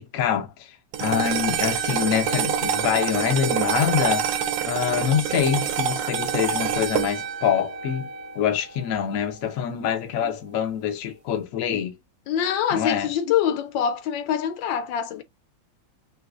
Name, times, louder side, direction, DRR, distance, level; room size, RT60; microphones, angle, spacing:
voice 1, 0.0-4.3 4.6-8.1 8.3-12.0 12.7-13.1, left 9 dB, 60° left, 0.9 m, -25 dB
sound 1, 0.9-9.4, right 8 dB, 75° right, 1.3 m, -27 dB
voice 2, 12.3-15.2, left 9 dB, 80° left, 1.3 m, -24 dB
3.2 x 3.0 x 2.3 m
omnidirectional pair, 2.1 m